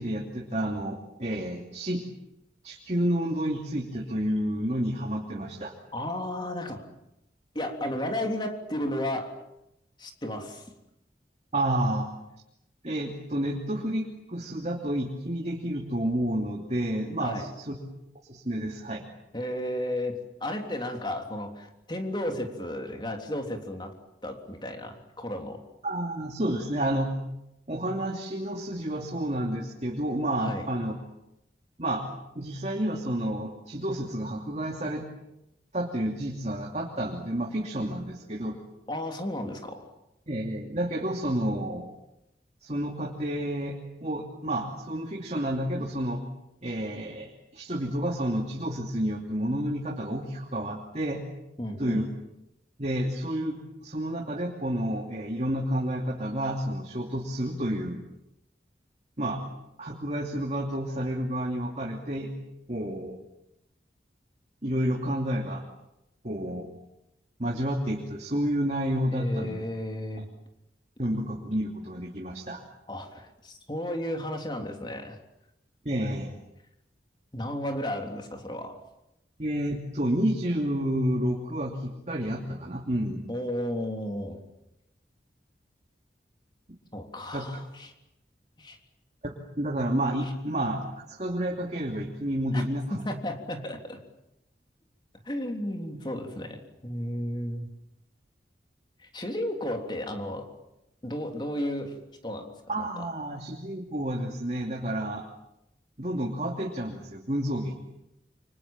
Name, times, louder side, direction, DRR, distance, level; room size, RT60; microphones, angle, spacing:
voice 1, 0.0-2.0 2.6-5.7 11.5-12.1 12.8-17.8 18.3-19.0 25.8-27.1 27.7-30.9 31.8-32.0 32.3-35.0 35.7-38.6 40.3-41.9 42.6-43.8 44.0-46.2 46.6-51.2 51.8-52.1 52.8-58.0 59.2-59.4 59.8-62.3 62.7-63.2 64.6-65.6 66.2-66.7 67.4-69.6 71.0-72.6 75.8-76.3 79.4-83.2 87.3-87.4 89.2-93.1 102.7-105.2 106.0-107.8, right 1 dB, 40° right, 1 dB, 2.8 m, -30 dB
voice 2, 5.9-6.9 7.6-9.4 10.0-10.7 17.2-17.5 19.3-23.9 24.2-25.6 30.4-30.7 38.9-39.9 51.6-52.1 69.1-70.3 72.9-75.2 77.3-78.8 83.3-84.4 86.9-87.9 88.6-88.8 92.5-92.6 92.9-94.0 95.3-97.7 99.0-100.5 101.0-103.1, left 1 dB, 25° left, 4 dB, 3.5 m, -33 dB
28.5 x 25.5 x 7.5 m, 0.85 s
head